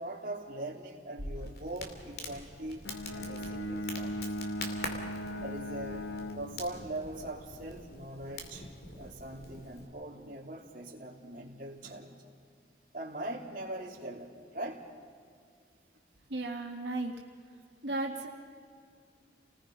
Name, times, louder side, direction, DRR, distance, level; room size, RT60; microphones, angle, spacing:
voice 1, 0.0-2.8 3.1-4.2 5.4-8.6 9.0-12.3 12.9-14.9, right 1 dB, 50° right, -1 dB, 3.1 m, -41 dB
Crackle, 1.2-9.9, left 2 dB, 60° left, 2.9 m, -44 dB
Bowed string instrument, 2.8-7.1, equal, 85° left, 1.3 m, -38 dB
voice 2, 16.3-17.2 17.8-18.3, right 2 dB, 90° right, 0 dB, 1.9 m, -34 dB
30.0 x 20.0 x 5.5 m, 2.2 s
head